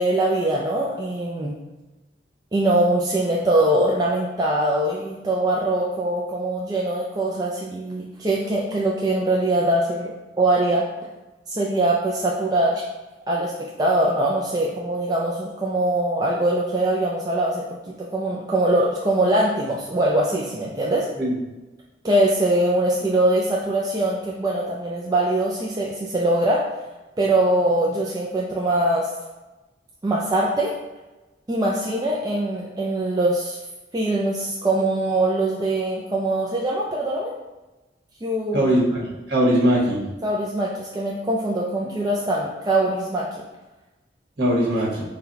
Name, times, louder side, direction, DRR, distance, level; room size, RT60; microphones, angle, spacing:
voice 1, 0.0-1.6 2.5-11.1 11.5-12.8 13.3-13.5 13.8-17.6 18.1-21.1 22.0-26.7 27.2-29.1 30.0-30.7 31.5-33.6 33.9-37.3 38.2-38.7 40.2-43.3, right 1 dB, 20° right, -3 dB, 0.3 m, -22 dB
voice 2, 38.5-40.0 44.4-45.0, equal, 60° right, -6 dB, 1.3 m, -20 dB
4.0 x 2.2 x 4.0 m, 1.1 s
head